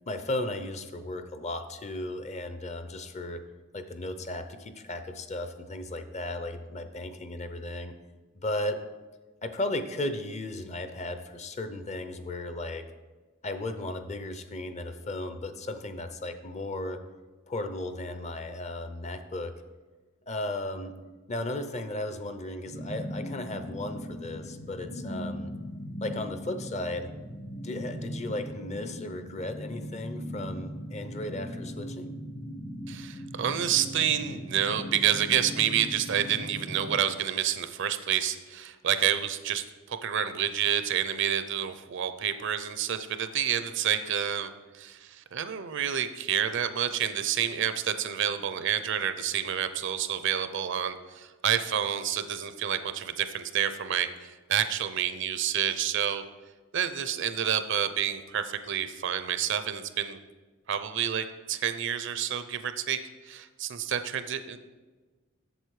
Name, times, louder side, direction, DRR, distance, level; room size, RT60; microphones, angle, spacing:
voice 1, 0.1-3.4 3.7-7.9 8.4-8.8 9.4-12.9 13.4-17.0 17.5-19.5 20.3-20.9 21.3-25.5 26.0-27.1 27.6-32.1, left 1 dB, 35° left, 9 dB, 0.6 m, -35 dB
sound 1, 22.7-37.0, equal, 50° left, 1.2 m, -39 dB
voice 2, 32.9-44.5 44.7-56.2 56.7-60.2 60.7-63.0 63.3-64.6, right 9 dB, 60° right, 11 dB, 0.5 m, -29 dB
7.9 x 7.1 x 4.8 m, 1.3 s
head